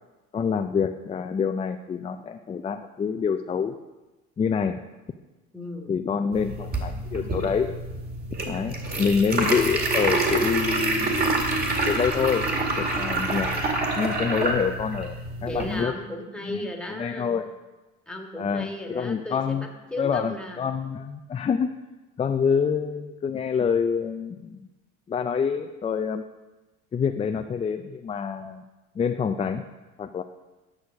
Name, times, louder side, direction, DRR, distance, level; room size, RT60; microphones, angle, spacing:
voice 1, 0.3-3.8 4.4-4.8 5.9-7.7 8.5-11.4 11.8-12.5 12.8-13.5 14.0-15.9 16.5-17.5 18.4-19.7 20.0-21.7 22.2-24.6 25.1-26.2 26.9-28.6 29.0-29.6 30.0-30.2, left 6 dB, 20° left, 7 dB, 0.4 m, -26 dB
voice 2, 5.5-6.0 13.1-13.8 15.4-17.4 18.1-20.6, left 1 dB, 5° left, 1 dB, 1.6 m, -36 dB
sound 1, 6.3-15.8, right 2 dB, 30° right, 2.2 m, -27 dB
10.5 x 6.4 x 6.2 m, 1.1 s
cardioid pair, 110°, 29 cm